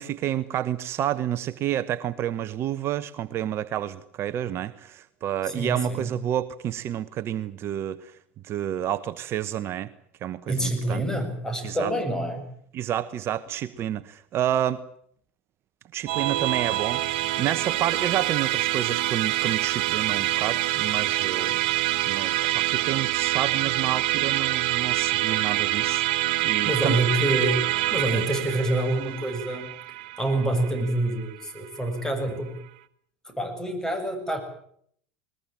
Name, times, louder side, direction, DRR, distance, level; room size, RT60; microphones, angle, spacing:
voice 1, 0.0-8.1 8.4-9.9 10.2-11.0 11.6-11.9 12.7-14.8 15.9-21.6 22.1-27.0 28.1-28.2, right 11 dB, 45° right, 1.1 m, -29 dB
voice 2, 5.5-6.1 10.5-12.4 26.6-27.6 27.9-29.7 30.2-32.5 33.3-34.4, right 1 dB, 10° left, 7.4 m, -27 dB
Musical instrument, 16.1-31.6, right 16 dB, 65° right, 1.6 m, -26 dB
21.0 x 21.0 x 8.9 m
hypercardioid pair, 85°, 6 cm